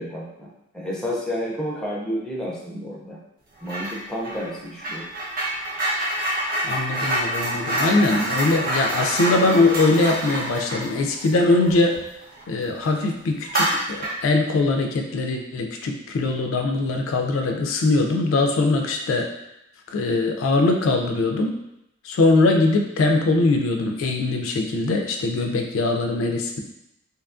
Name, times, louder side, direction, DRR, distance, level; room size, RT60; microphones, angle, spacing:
voice 1, 0.0-3.2 3.6-5.1, equal, 5° left, -4 dB, 0.5 m, -30 dB
sound 1, 3.7-4.0 4.2-12.4 12.8-12.9 13.4-14.3, right 1 dB, 45° right, 0.6 m, -27 dB
voice 2, 6.6-12.0 12.5-19.3 19.9-21.5 22.0-26.6, left 2 dB, 65° left, 3 dB, 0.3 m, -21 dB
2.8 x 2.3 x 2.4 m, 0.83 s
head